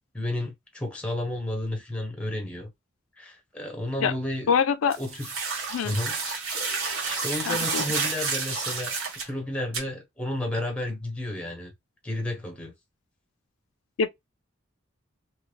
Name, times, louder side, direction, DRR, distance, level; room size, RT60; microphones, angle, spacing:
voice 1, 0.1-2.7 3.2-4.5 5.0-5.3 5.8-6.2 7.0-9.0 9.2-11.7 12.0-12.7, left 1 dB, 5° left, 0.7 m, -32 dB
voice 2, 4.5-5.0 5.7-6.0 7.5-7.8 14.0-14.1, left 6 dB, 80° left, 0.4 m, -24 dB
sound 1, 4.9-9.3 9.7-9.8, right 4 dB, 85° right, 1.2 m, -30 dB
2.9 x 2.6 x 3.1 m
head